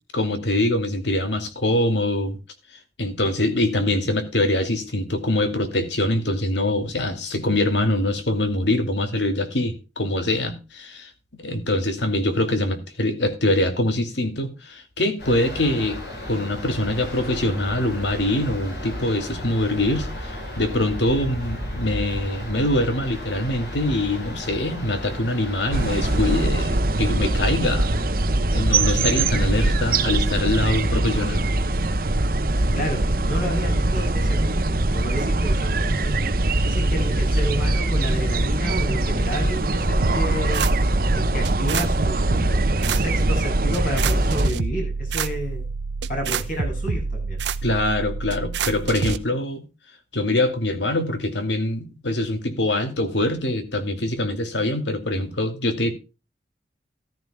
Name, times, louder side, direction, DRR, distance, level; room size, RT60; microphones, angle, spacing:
voice 1, 0.1-2.4 3.0-16.0 16.3-28.0 28.5-31.4 47.6-49.6 50.1-55.9, left 1 dB, 85° left, 2.4 m, -24 dB
sound 1, 15.2-26.4, equal, 65° left, 6.0 m, -33 dB
sound 2, 25.7-44.5, right 2 dB, 55° right, 1.0 m, -22 dB
voice 2, 32.7-40.6 41.1-45.6 46.1-47.4, equal, 50° left, 7.3 m, -31 dB
sound 3, 40.0-49.2, right 4 dB, 85° right, 0.8 m, -28 dB
14.5 x 13.5 x 2.2 m
head